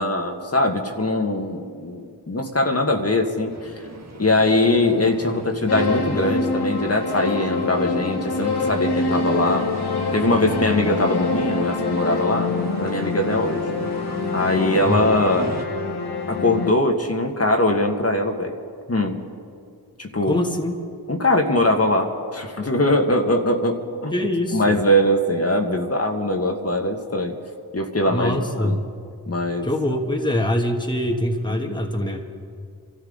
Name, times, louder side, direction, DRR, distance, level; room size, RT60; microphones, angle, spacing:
voice 1, 0.0-3.7 4.2-9.7 10.1-12.5 12.8-13.6 14.3-15.5 16.3-18.5 18.9-19.2 20.0-20.4 21.1-24.1 24.5-27.3 27.7-28.8 29.3-29.7 31.7-31.8, left 1 dB, 40° left, 3 dB, 1.7 m, -21 dB
sound 1, 3.5-15.6, right 3 dB, 40° right, 1.6 m, -37 dB
sound 2, 5.7-16.7, left 3 dB, 80° left, 1.5 m, -25 dB
voice 2, 14.8-15.2 20.3-20.8 24.1-24.8 28.1-28.8 29.6-32.2, left 1 dB, 10° left, 2 dB, 1.5 m, -24 dB
25.5 x 13.5 x 4.0 m, 2.3 s
cardioid pair, 50°, 39 cm